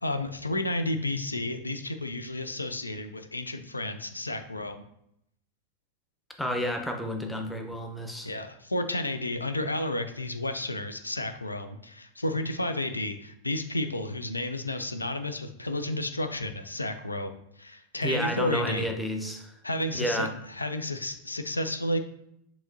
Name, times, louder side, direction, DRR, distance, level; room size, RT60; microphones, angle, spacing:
voice 1, 0.0-4.8 8.2-18.8 19.6-22.0, left 1 dB, 80° left, 9 dB, 0.4 m, -32 dB
voice 2, 6.4-8.3 18.0-19.5 20.0-20.3, equal, 5° left, 3 dB, 0.7 m, -30 dB
6.8 x 2.9 x 2.7 m, 0.76 s
figure-of-eight pair, 90°, 0 cm